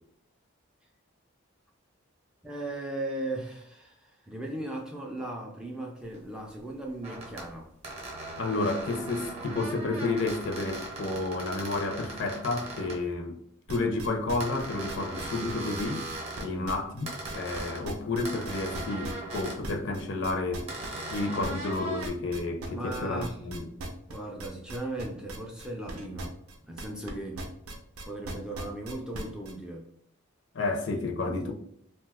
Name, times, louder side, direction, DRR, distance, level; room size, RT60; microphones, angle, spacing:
voice 1, 2.4-7.7 16.4-16.7 22.7-23.4 24.1-26.4 26.6-27.5 28.0-29.9 31.2-31.5, right 1 dB, 5° right, -1 dB, 0.3 m, -37 dB
sound 1, 6.1-6.2 7.0-7.5 7.8-13.0 14.4-16.5 17.1-17.9 18.2-19.6 20.7-22.1, right 2 dB, 30° right, 0.7 m, -39 dB
voice 2, 8.4-13.4 13.7-16.0 16.4-17.1 17.3-20.7 21.1-23.7 30.5-31.5, left 2 dB, 55° left, 4 dB, 0.5 m, -31 dB
sound 2, 13.7-17.6 17.8-27.1 27.4-29.5, right 2 dB, 90° right, 0.5 m, -39 dB
2.6 x 2.2 x 3.4 m, 0.70 s
head